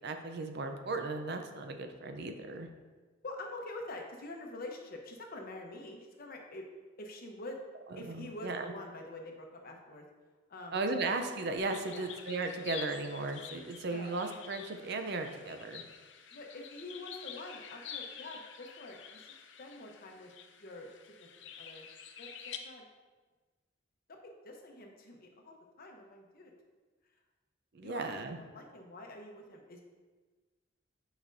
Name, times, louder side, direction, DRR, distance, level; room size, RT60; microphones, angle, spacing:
voice 1, 0.0-2.7 8.1-8.7 10.7-15.8 27.7-28.4, right 3 dB, 60° right, 6 dB, 0.6 m, -36 dB
voice 2, 3.2-6.6 7.0-7.6 8.0-10.0 10.5-10.8 11.8-12.1 13.9-14.1 16.3-20.3 20.6-21.3 21.6-21.9 22.2-22.9 24.1-26.5 27.8-28.0 28.4-29.8, left 2 dB, 50° left, 2 dB, 0.9 m, -46 dB
sound 1, 11.6-22.6, left 8 dB, 70° left, 0.5 m, -48 dB
8.6 x 5.0 x 2.6 m, 1.3 s
head